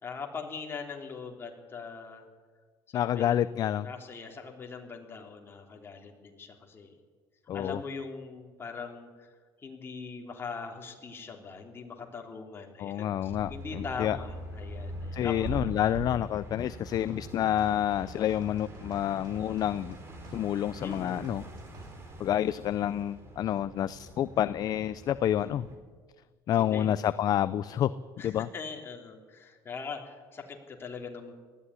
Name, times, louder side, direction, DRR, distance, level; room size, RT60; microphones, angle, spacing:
voice 1, 0.0-2.3 2.9-3.4 3.8-6.9 7.5-9.3 9.6-15.3 20.8-21.2 26.7-27.0 28.2-31.3, left 5 dB, 25° left, 1 dB, 3.3 m, -41 dB
voice 2, 2.9-3.9 7.5-7.8 12.8-14.2 15.1-20.0 20.3-21.4 22.2-25.7 26.5-27.9 28.2-28.5, left 11 dB, 45° left, 15 dB, 0.5 m, -28 dB
sound 1, 13.2-25.7, right 1 dB, 25° right, 3.9 m, -43 dB
sound 2, 16.6-21.9, right 2 dB, 45° right, 5.5 m, -48 dB
19.5 x 14.0 x 9.9 m, 1.5 s
cardioid pair, 140°, 10 cm